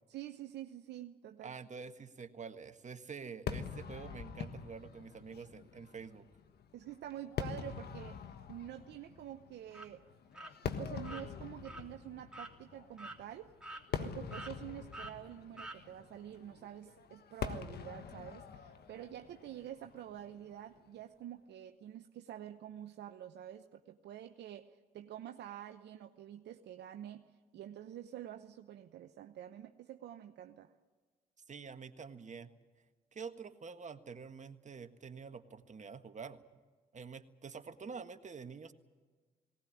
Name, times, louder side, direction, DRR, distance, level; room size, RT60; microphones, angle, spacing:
voice 1, 0.1-1.6 6.7-8.2 8.5-10.0 10.8-13.5 14.0-30.7, right 11 dB, 70° right, 7 dB, 0.9 m, -48 dB
voice 2, 1.4-6.3 31.5-32.5 33.1-36.4 36.9-38.7, right 5 dB, 40° right, 8 dB, 1.7 m, -47 dB
Fireworks, 3.5-20.8, left 7 dB, 65° left, 1.5 m, -45 dB
sound 1, 9.7-9.9 10.3-10.5 11.0-11.2 11.6-11.8 12.3-12.5 13.0-13.2 13.6-14.1 14.3-14.5 14.9-15.1 15.6-15.8, right 2 dB, 5° right, 3.2 m, -46 dB
19.0 x 18.5 x 10.0 m, 1.4 s
hypercardioid pair, 50°, 18 cm